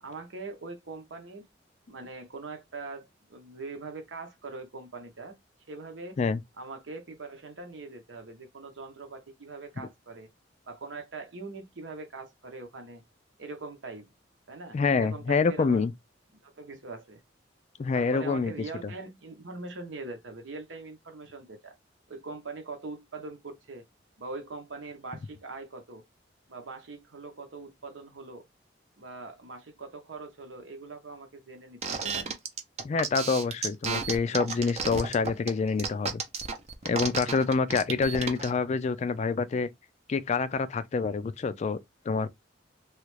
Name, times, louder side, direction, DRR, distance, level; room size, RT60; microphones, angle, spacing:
voice 1, 0.0-1.5 1.9-5.4 5.7-6.2 6.6-10.3 10.7-13.0 13.4-14.1 14.5-15.8 16.4-17.2 17.9-21.7 22.1-23.9 24.2-26.0 26.5-28.5 29.0-32.4, right 3 dB, 80° right, 0.9 m, -42 dB
voice 2, 14.7-15.9 17.8-18.5 32.8-36.2 36.8-39.7 40.1-41.8 42.1-42.3, left 4 dB, 35° left, 0.3 m, -27 dB
sound 1, 31.8-38.5, right 5 dB, 35° right, 0.6 m, -32 dB
3.1 x 2.4 x 3.1 m
head